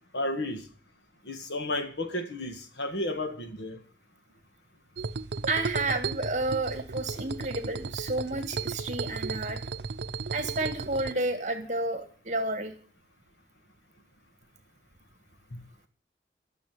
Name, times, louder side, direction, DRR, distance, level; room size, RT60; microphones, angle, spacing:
voice 1, 0.1-0.7 1.3-3.8 15.5-15.6, left 1 dB, 80° left, 2.0 m, -32 dB
sound 1, 5.0-11.1, right 4 dB, 75° right, 0.7 m, -35 dB
voice 2, 5.5-9.6 10.3-12.7, right 2 dB, 40° right, 1.9 m, -31 dB
12.5 x 6.9 x 9.4 m
head